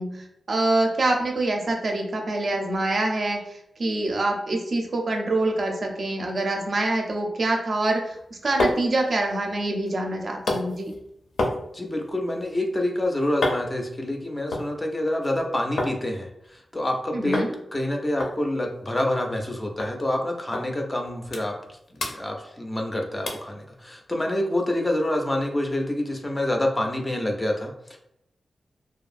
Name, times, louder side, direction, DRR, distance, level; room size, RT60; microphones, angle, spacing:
voice 1, 0.0-8.2 8.4-10.9 17.1-17.5, right 2 dB, 50° right, 2 dB, 0.4 m, -25 dB
sound 1, 8.1-16.0 16.3-17.0 17.3-17.5 17.8-17.9 18.2-19.5 19.8-19.9 20.5-20.7 21.0-21.7 22.0-22.9 23.3-23.5 24.0-24.1, left 2 dB, 80° left, 0.5 m, -31 dB
voice 2, 11.7-17.4 17.7-28.0, left 1 dB, 20° left, 2 dB, 0.3 m, -27 dB
2.6 x 2.3 x 2.4 m, 0.78 s
wide cardioid pair, 150°, 0 cm